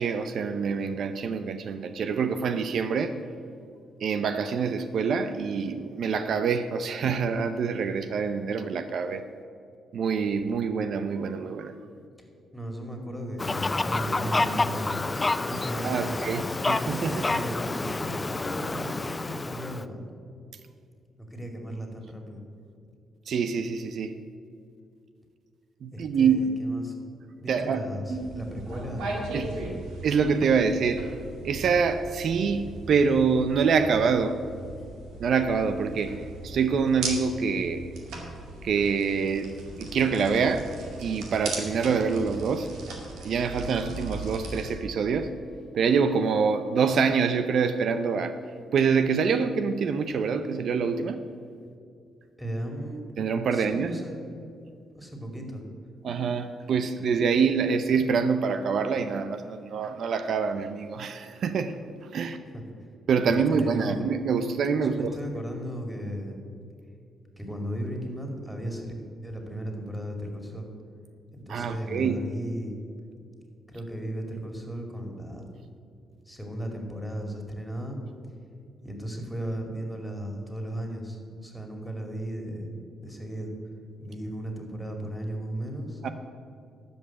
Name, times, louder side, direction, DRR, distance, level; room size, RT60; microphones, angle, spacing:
voice 1, 0.0-3.2 4.0-9.2 9.9-11.7 15.8-17.3 23.3-24.2 25.8-26.7 27.5-27.8 29.3-29.5 30.0-31.1 31.4-34.4 35.2-37.9 38.6-40.7 41.0-42.7 43.2-45.3 45.7-48.3 48.7-51.2 53.2-54.0 56.0-62.4 63.1-65.1 71.5-72.3 86.0-86.1, right 5 dB, 65° right, 9 dB, 0.6 m, -26 dB
voice 2, 12.5-15.0 15.3-16.4 17.1-20.0 21.2-22.4 25.9-26.9 27.4-29.8 34.8-34.9 52.4-53.0 53.5-54.2 54.9-55.6 62.5-62.6 63.5-64.0 64.8-66.4 67.4-68.9 69.2-70.7 71.3-72.7 73.7-75.5 76.3-78.0 78.8-82.7 83.0-83.5 84.0-86.1, right 1 dB, 5° left, 2 dB, 2.6 m, -36 dB
Fowl, 13.4-19.8, left 3 dB, 25° left, 0.4 m, -29 dB
sound 1, 28.1-44.7, right 2 dB, 80° right, 2.0 m, -38 dB
Mallet percussion, 43.8-45.6, left 9 dB, 65° left, 1.4 m, -57 dB
12.5 x 5.5 x 8.5 m, 2.4 s
supercardioid pair, 65°, 0 cm